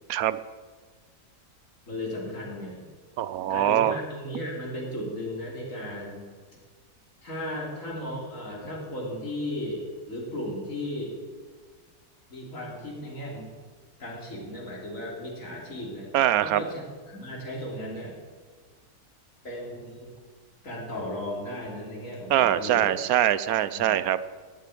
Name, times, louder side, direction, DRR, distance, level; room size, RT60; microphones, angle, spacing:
voice 1, 0.1-0.4 3.2-3.9 16.1-16.6 22.3-24.2, right 11 dB, 70° right, 15 dB, 1.1 m, -23 dB
voice 2, 1.9-2.9 3.5-6.3 6.6-6.7 7.2-11.2 12.3-13.5 14.0-16.2 16.4-18.1 19.4-20.1 20.6-23.0 23.7-24.0, left 1 dB, 55° left, -3 dB, 3.7 m, -35 dB
13.5 x 8.3 x 9.9 m, 1.5 s
omnidirectional pair, 1.6 m